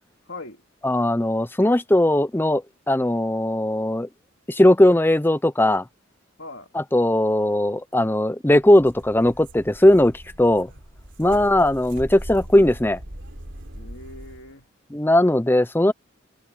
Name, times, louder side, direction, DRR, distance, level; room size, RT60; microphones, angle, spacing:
voice 1, 0.3-0.6 6.4-6.7 11.2-11.5 13.7-14.7, left 2 dB, 60° left, 2.7 m, -40 dB
voice 2, 0.8-4.1 4.5-5.8 6.7-10.7 11.2-13.0 14.9-15.9, left 1 dB, 10° left, 0.6 m, -19 dB
sound 1, 8.6-14.5, equal, 60° right, 4.1 m, -40 dB
head